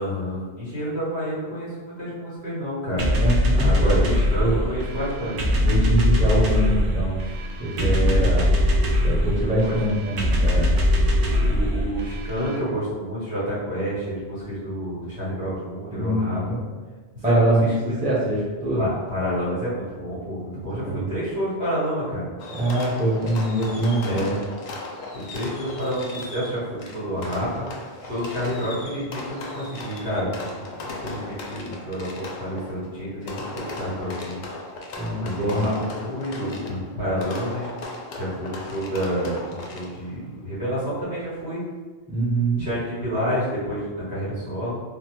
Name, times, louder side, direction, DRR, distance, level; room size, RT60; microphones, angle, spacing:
voice 1, 0.0-3.1 3.6-5.4 7.8-8.3 9.4-9.8 11.3-16.6 17.2-17.5 17.9-18.0 18.8-22.2 24.0-24.4 25.1-27.6 28.0-34.4 35.2-37.7 38.1-41.6 42.6-44.8, equal, 85° right, -10 dB, 1.8 m, -29 dB
sound 1, 3.0-12.5, left 1 dB, 65° right, 0.7 m, -21 dB
voice 2, 3.2-4.0 4.4-4.6 5.6-7.2 7.6-7.9 8.2-8.4 9.0-10.7 15.9-16.6 17.2-18.8 20.8-21.1 22.5-24.2 35.0-35.8 42.1-42.7, right 1 dB, 10° right, -6 dB, 0.5 m, -24 dB
Fireworks, 22.4-40.2, left 2 dB, 55° left, 0.5 m, -37 dB
3.3 x 2.1 x 3.0 m, 1.3 s
omnidirectional pair, 1.1 m